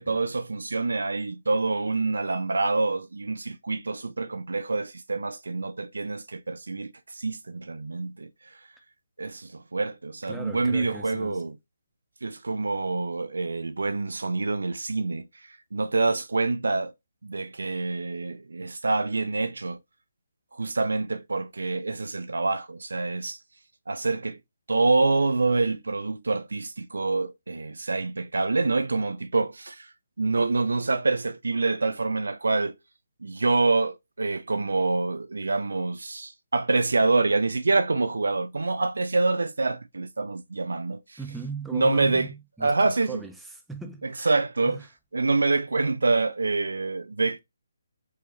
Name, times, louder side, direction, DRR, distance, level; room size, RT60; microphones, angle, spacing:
voice 1, 0.0-8.3 9.2-11.6 12.2-15.3 15.7-16.9 17.2-19.8 20.5-23.4 23.9-24.4 24.7-29.9 30.2-32.8 33.2-41.2 41.7-42.3 42.6-43.2 44.3-44.8 45.1-47.4, right 3 dB, 75° right, 0.4 m, -26 dB
voice 2, 10.3-11.5 41.2-44.3 44.6-44.9, right 4 dB, 5° right, 0.5 m, -39 dB
4.6 x 2.1 x 2.8 m
figure-of-eight pair, 145°, 0 cm